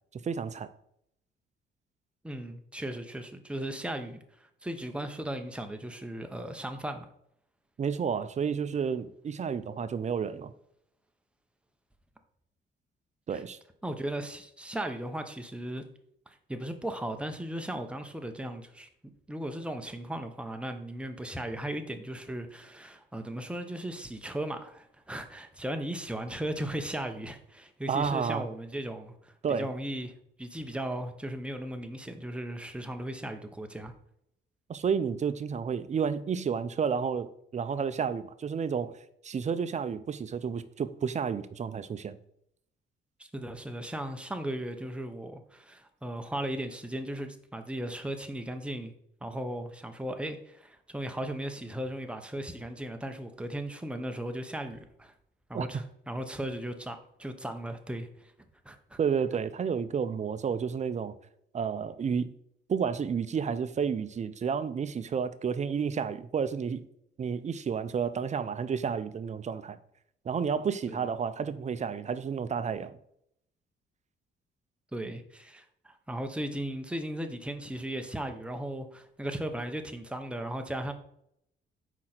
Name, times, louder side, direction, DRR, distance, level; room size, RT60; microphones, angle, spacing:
voice 1, 0.1-0.7 7.8-10.5 13.3-13.6 27.9-28.5 29.4-29.7 34.7-42.2 55.5-55.7 59.0-61.1 61.5-62.3 62.7-66.8 67.2-69.8 70.2-73.0, right 6 dB, 35° right, 0.5 m, -31 dB
voice 2, 2.2-4.2 4.6-7.1 13.3-13.4 13.8-15.8 16.3-18.9 19.3-30.1 30.4-33.9 43.2-48.9 49.2-55.1 55.5-58.3 58.6-59.0 70.9-71.1 74.9-80.9, right 1 dB, 5° right, 0.9 m, -37 dB
6.0 x 5.0 x 4.4 m
cardioid pair, 90°, 20 cm